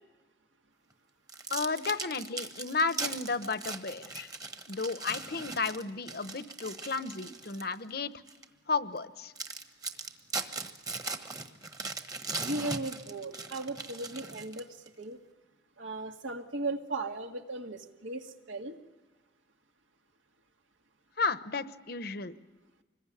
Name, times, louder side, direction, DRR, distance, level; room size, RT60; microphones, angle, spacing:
sound 1, 1.3-7.7 8.3-8.4 9.0-9.1 9.4-14.9, right 3 dB, 20° right, 1.3 m, -39 dB
voice 1, 1.5-4.3 4.7-8.1 8.7-9.3 21.2-22.4, left 4 dB, 50° left, 13 dB, 1.0 m, -33 dB
voice 2, 12.4-14.7 15.0-15.2 15.8-18.8, right 2 dB, 75° right, 5 dB, 2.0 m, -37 dB
26.0 x 21.5 x 10.0 m, 1.2 s
head